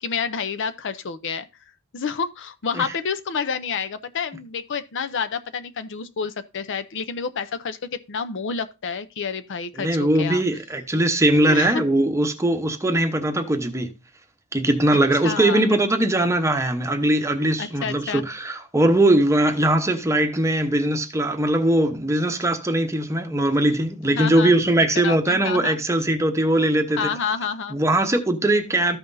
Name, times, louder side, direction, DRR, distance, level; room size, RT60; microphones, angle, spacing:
voice 1, 0.0-1.5 1.9-10.4 11.3-11.8 15.2-15.6 17.6-18.2 24.1-24.6 24.9-25.8 27.0-27.8, left 5 dB, 55° left, 0.6 m, -29 dB
voice 2, 9.8-13.9 14.5-27.1 27.7-29.0, right 1 dB, 15° right, 0.9 m, -20 dB
14.0 x 5.8 x 2.6 m
head